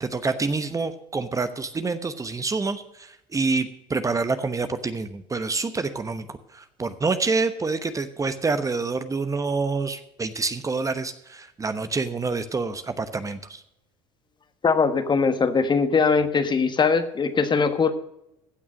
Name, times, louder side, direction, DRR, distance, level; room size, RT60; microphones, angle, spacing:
voice 1, 0.0-13.6, right 4 dB, 20° right, 11 dB, 1.0 m, -27 dB
voice 2, 14.6-17.9, left 5 dB, 30° left, 10 dB, 1.4 m, -21 dB
16.0 x 6.1 x 6.4 m, 0.83 s
hypercardioid pair, 75°, 15 cm